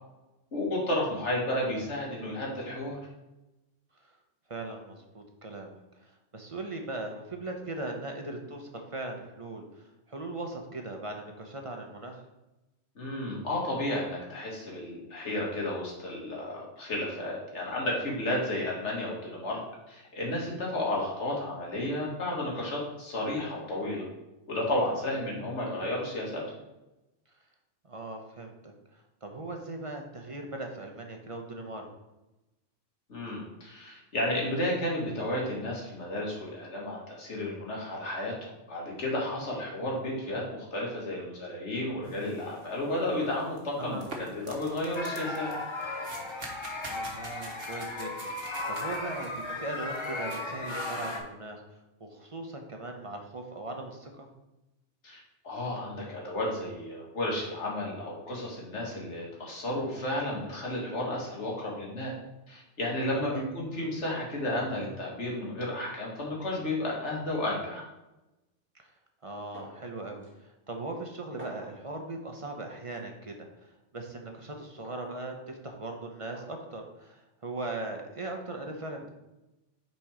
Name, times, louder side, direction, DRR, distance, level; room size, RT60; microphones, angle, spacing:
voice 1, 0.5-3.0 13.0-19.6 19.9-24.1 24.5-26.4 33.1-45.5 55.0-62.1 62.5-67.8, left 1 dB, 70° left, -3 dB, 2.0 m, -32 dB
voice 2, 4.5-12.2 25.0-25.2 27.8-31.9 43.8-44.0 46.9-48.3 48.7-54.3 63.1-63.4 68.7-68.9 69.2-79.1, right 2 dB, 35° right, 3 dB, 0.7 m, -39 dB
sound 1, 42.0-51.2, right 2 dB, 55° right, 1.3 m, -46 dB
sound 2, 44.9-51.2, left 2 dB, 30° left, 0.7 m, -36 dB
sound 3, 69.5-69.9 70.2-70.3 71.4-71.8 73.0-73.1 74.8-75.2 76.3-76.5 77.8-77.9, equal, 10° right, 1.5 m, -48 dB
6.0 x 4.2 x 4.9 m, 0.99 s
omnidirectional pair, 1.2 m